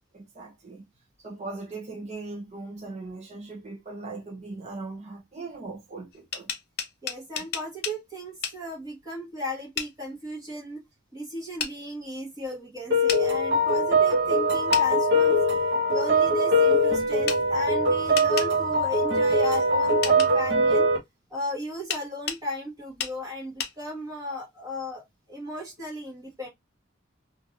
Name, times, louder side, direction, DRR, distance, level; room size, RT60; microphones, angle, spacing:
voice 1, 0.1-0.9 1.2-6.5 7.3-7.4, right 3 dB, 35° right, 0.8 m, -39 dB
sound 1, 6.1-8.0 8.4-8.6 9.8-9.9 11.6-11.7 13.1-13.2 14.7-14.9 17.3-17.4 18.2-18.5 20.0-20.3 21.9-22.4 23.0-23.2 23.6-23.7, left 8 dB, 50° left, 0.6 m, -31 dB
voice 2, 7.0-10.8 11.1-15.4 15.9-20.9 21.3-25.0 25.3-26.5, left 1 dB, 15° right, 1.2 m, -36 dB
sound 2, 12.9-21.0, equal, 55° right, 1.1 m, -22 dB
3.1 x 2.5 x 2.5 m
head